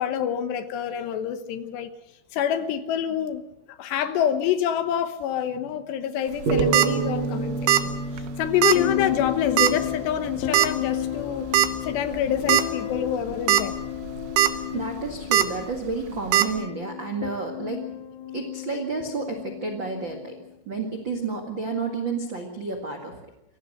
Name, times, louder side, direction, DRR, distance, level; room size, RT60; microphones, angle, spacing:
voice 1, 0.0-1.9 2.3-3.4 3.8-7.9 8.4-11.5 11.8-13.7, left 9 dB, 70° left, 3.1 m, -27 dB
sound 1, 6.4-6.9 7.7-8.3 8.6-8.8 9.6-9.9 10.5-10.7 11.5-11.7 12.1-12.2 12.5-12.6 13.3-13.6 14.0-14.5 15.3-15.5 16.3-16.5, right 13 dB, 90° right, 3.7 m, -18 dB
sound 2, 6.5-9.9, right 3 dB, 45° right, 7.1 m, -28 dB
sound 3, 8.7-20.5 21.3-21.6, left 12 dB, 85° left, 3.5 m, -33 dB
voice 2, 14.5-17.9 18.3-20.4 20.6-23.2, right 4 dB, 70° right, 1.1 m, -31 dB
24.5 x 16.5 x 6.5 m
omnidirectional pair, 5.6 m